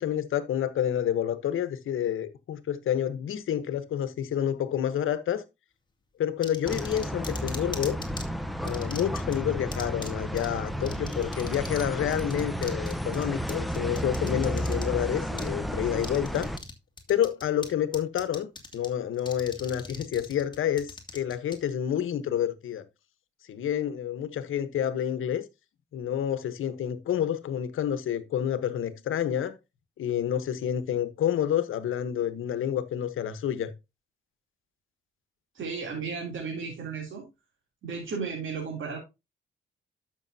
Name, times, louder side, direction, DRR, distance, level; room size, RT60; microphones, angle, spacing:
voice 1, 0.0-5.4 6.2-8.0 8.6-16.5 17.1-22.8 23.5-25.4 25.9-29.5 30.0-33.7, left 10 dB, 75° left, 1.1 m, -29 dB
sound 1, 6.4-8.2 8.7-9.4 9.7-10.1 10.4-10.5 10.9-11.9 12.1-14.8 15.4-15.5 16.0-16.7 17.0-17.7 17.9-18.9 19.2-21.6, left 3 dB, 20° left, 2.3 m, -40 dB
sound 2, 6.6-16.6, equal, ahead, 0.9 m, -32 dB
voice 2, 35.5-37.2 37.8-39.0, right 5 dB, 70° right, 3.1 m, -34 dB
12.0 x 6.3 x 2.7 m
cardioid pair, 75°, 21 cm